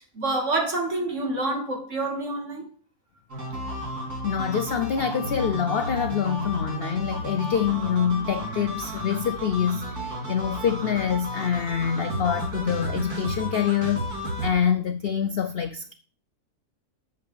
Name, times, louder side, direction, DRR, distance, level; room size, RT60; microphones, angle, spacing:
voice 1, 0.1-2.6, right 2 dB, 50° right, 2.7 m, -27 dB
sound 1, 3.3-14.5, equal, 75° right, 3.9 m, -33 dB
voice 2, 4.2-15.9, left 8 dB, 65° left, 0.6 m, -26 dB
7.3 x 5.3 x 6.9 m
omnidirectional pair, 1.6 m